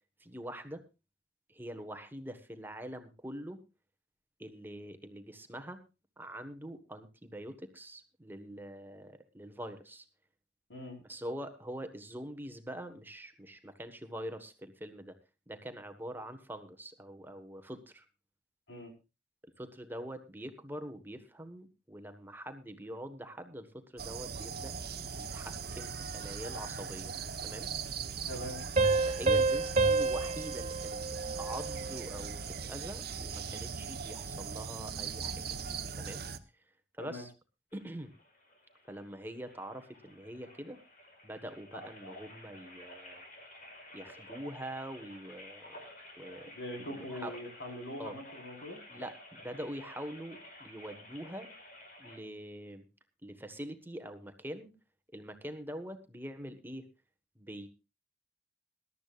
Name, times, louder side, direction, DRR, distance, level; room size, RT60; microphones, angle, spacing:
voice 1, 0.2-0.8 1.5-3.6 4.4-5.8 6.2-10.0 11.1-15.2 15.5-18.0 19.4-24.7 25.2-27.1 27.4-27.7 29.1-32.4 32.7-35.4 36.0-36.3 37.0-37.3 37.7-38.1 38.9-40.8 41.2-43.2 43.9-45.8 46.2-46.5 46.9-47.4 48.0-48.1 48.9-51.5 52.0-52.8 53.2-54.7 55.1-56.9 57.3-57.7, equal, 10° right, 8 dB, 1.4 m, -44 dB
sound 1, 24.0-36.4, right 5 dB, 60° right, 1.0 m, -40 dB
voice 2, 28.3-28.6 37.0-37.2 46.5-48.8, equal, 85° left, 2 dB, 5.1 m, -42 dB
sound 2, 28.8-32.1, right 3 dB, 40° right, 2.1 m, -29 dB
sound 3, 37.7-52.2, left 1 dB, 50° left, 4.9 m, -52 dB
21.0 x 12.5 x 2.5 m, 0.28 s
head